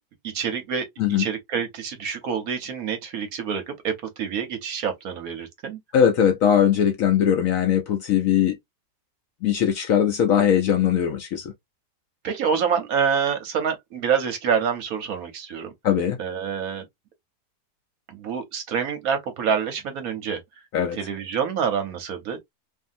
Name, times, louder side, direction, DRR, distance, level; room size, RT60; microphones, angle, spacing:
voice 1, 0.2-5.8 12.2-15.7 16.2-16.9 18.1-20.4 21.0-22.4, right 7 dB, 65° right, 1.0 m, -27 dB
voice 2, 5.9-8.6 9.4-11.5 15.8-16.2 20.7-21.0, left 9 dB, 75° left, 0.7 m, -20 dB
2.6 x 2.6 x 2.5 m
omnidirectional pair, 1.9 m